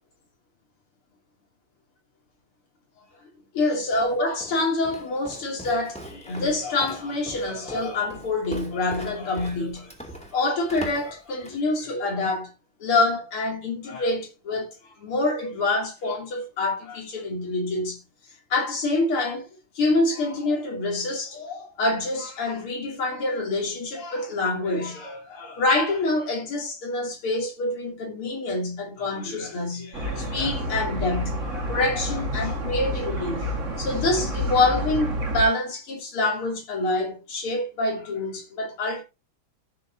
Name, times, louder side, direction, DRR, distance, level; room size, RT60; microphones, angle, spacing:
voice 1, 3.5-9.9 10.3-12.5 12.8-18.0 18.5-19.5 19.8-33.5 33.8-39.0, left 2 dB, 90° left, 3.7 m, -26 dB
Walk footsteps, 3.9-11.7, equal, 5° left, 2.1 m, -41 dB
sound 1, 29.9-35.4, equal, 35° right, 2.1 m, -29 dB
14.5 x 6.3 x 2.7 m
omnidirectional pair, 2.3 m